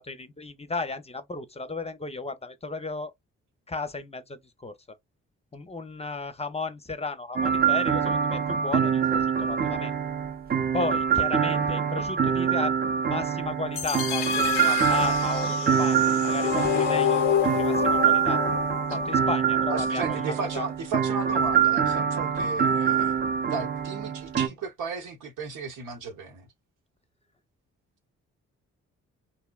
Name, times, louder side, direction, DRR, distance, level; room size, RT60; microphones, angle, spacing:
voice 1, 0.0-3.1 3.7-4.7 5.5-9.9 10.7-12.7 13.1-16.0 16.2-18.4 18.9-20.7, left 3 dB, 20° left, 0.6 m, -34 dB
sound 1, 7.4-24.5, right 7 dB, 30° right, 0.6 m, -25 dB
sound 2, 13.8-19.8, left 9 dB, 90° left, 0.6 m, -28 dB
voice 2, 19.7-26.5, right 4 dB, 80° right, 1.0 m, -35 dB
2.7 x 2.1 x 2.3 m
supercardioid pair, 50°, 31 cm